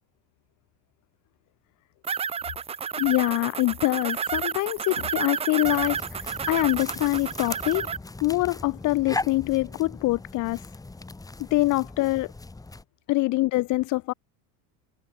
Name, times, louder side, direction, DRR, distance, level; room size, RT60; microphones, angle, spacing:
sound 1, 2.0-8.0, right 7 dB, 15° right, 0.6 m, -31 dB
voice 1, 3.0-7.9 8.2-10.6 11.5-12.3 13.1-14.1, left 19 dB, 45° left, 1.2 m, -24 dB
sound 2, 5.6-12.8, left 3 dB, 10° left, 3.4 m, -38 dB
cardioid pair, 145°, 40 cm